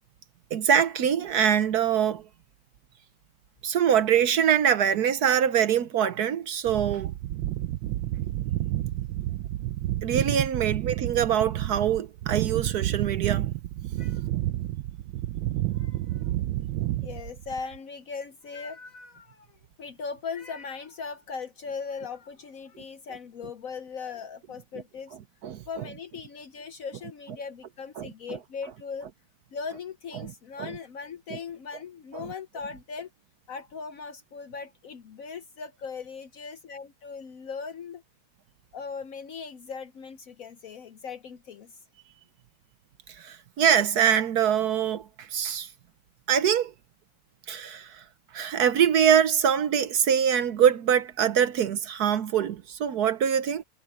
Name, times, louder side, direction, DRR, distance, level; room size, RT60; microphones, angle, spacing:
voice 1, 0.5-2.3 3.6-7.1 10.0-13.5 25.4-25.6 28.0-28.1 30.2-30.3 30.6-30.8 31.3-31.4 32.1-32.3 43.1-45.7 46.3-46.7 47.5-48.0 48.3-53.6, right 8 dB, 60° right, 1.2 m, -24 dB
sound 1, 6.7-17.8, right 15 dB, 85° right, 1.3 m, -30 dB
voice 2, 15.7-16.4 17.0-25.2 25.7-29.1 29.5-33.1 33.5-38.0 38.7-41.8, left 5 dB, 60° left, 1.0 m, -39 dB
omnidirectional pair, 2.1 m